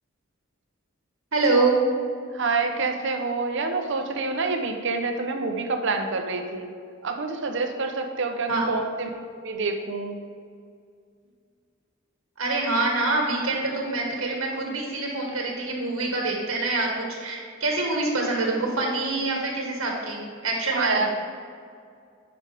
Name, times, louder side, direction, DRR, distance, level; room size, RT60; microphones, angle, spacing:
voice 1, 1.3-1.8 8.5-8.7 12.4-21.1, right 3 dB, 85° right, 0 dB, 1.5 m, -25 dB
voice 2, 2.3-6.7 7.0-9.1 9.4-10.2 20.7-21.3, right 3 dB, 60° right, 5 dB, 0.7 m, -27 dB
10.0 x 5.0 x 3.5 m, 2.2 s
head